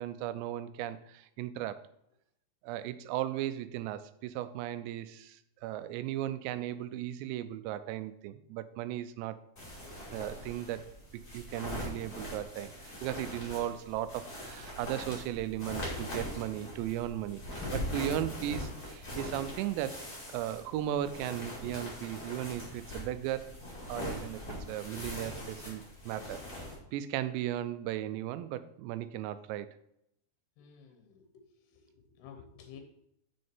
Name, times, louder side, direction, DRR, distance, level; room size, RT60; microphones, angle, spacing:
voice 1, 0.0-1.9 2.6-9.4 10.1-23.5 23.9-26.4 26.9-29.7, right 12 dB, 90° right, 13 dB, 2.8 m, -36 dB
sound 1, 9.6-26.7, left 1 dB, 25° left, 2.2 m, -41 dB
voice 2, 30.6-32.8, left 7 dB, 75° left, 5 dB, 2.7 m, -53 dB
6.6 x 6.4 x 4.4 m, 0.76 s
omnidirectional pair, 5.0 m